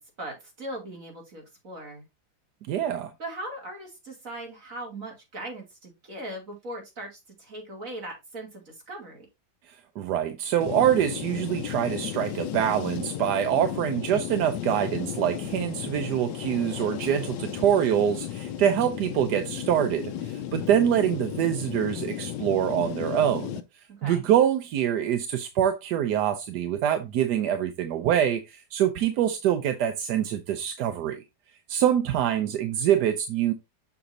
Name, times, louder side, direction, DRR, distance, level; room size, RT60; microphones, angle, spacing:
voice 1, 0.0-2.0 3.2-9.3 24.0-24.3, right 1 dB, 45° right, 2.9 m, -39 dB
voice 2, 2.7-3.1 9.7-23.5 24.0-31.2 31.7-33.5, right 10 dB, 70° right, 1.1 m, -25 dB
sound 1, 10.6-23.6, left 10 dB, 70° left, 1.3 m, -34 dB
7.0 x 6.3 x 2.6 m
omnidirectional pair, 2.1 m